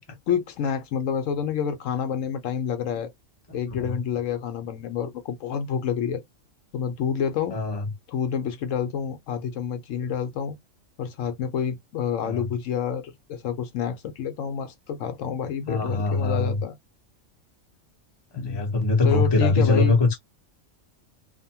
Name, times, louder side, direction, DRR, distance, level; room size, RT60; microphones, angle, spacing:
voice 1, 0.3-3.1 3.5-6.2 6.7-7.6 8.1-10.6 11.0-16.8 18.3-18.6 19.0-20.0, left 7 dB, 75° left, 1.0 m, -28 dB
voice 2, 7.5-7.9 12.2-12.5 15.7-16.6 18.3-20.2, left 3 dB, 25° left, 0.8 m, -22 dB
2.9 x 2.1 x 2.7 m
omnidirectional pair, 1.4 m